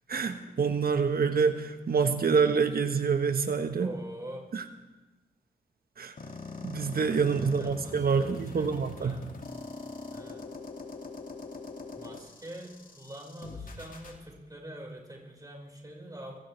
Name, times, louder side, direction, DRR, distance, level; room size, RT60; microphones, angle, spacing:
voice 1, 0.1-3.9 4.5-4.6 6.0-6.1 6.6-9.2, right 5 dB, 60° right, 7 dB, 1.5 m, -27 dB
voice 2, 3.8-4.4 7.3-8.7 9.0-9.5 10.1-10.4 12.0-16.4, right 1 dB, 20° right, -2 dB, 5.7 m, -45 dB
sound 1, 6.2-14.2, left 3 dB, 55° left, 2.5 m, -43 dB
26.0 x 16.0 x 3.5 m, 1.1 s
cardioid pair, 55°, 17 cm